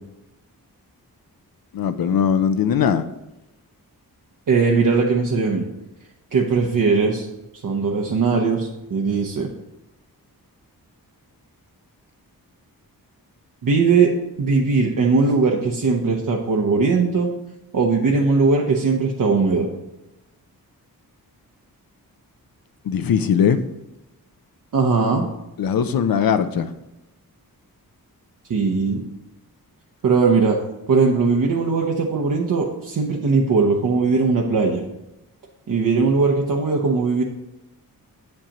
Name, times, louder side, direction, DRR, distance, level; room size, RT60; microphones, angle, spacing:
voice 1, 1.7-3.0 22.9-23.6 25.6-26.7, left 7 dB, 70° left, 10 dB, 0.5 m, -20 dB
voice 2, 4.5-5.7 6.3-7.2 7.6-9.5 13.6-14.1 14.4-17.3 17.7-19.7 24.7-25.3 28.5-29.0 30.0-30.6 30.9-34.8 35.7-37.2, right 4 dB, 60° right, -1 dB, 0.8 m, -19 dB
8.7 x 7.6 x 2.9 m, 0.94 s
wide cardioid pair, 155°, 37 cm